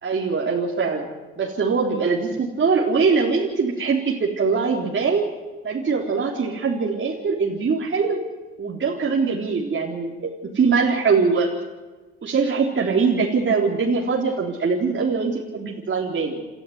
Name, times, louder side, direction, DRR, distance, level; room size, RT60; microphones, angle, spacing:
voice 1, 0.0-1.1 1.4-5.2 5.6-8.2 8.6-11.5 12.2-16.5, right 5 dB, 40° right, -2 dB, 3.8 m, -22 dB
28.5 x 13.0 x 9.6 m, 1.3 s
hypercardioid pair, 65°, 30 cm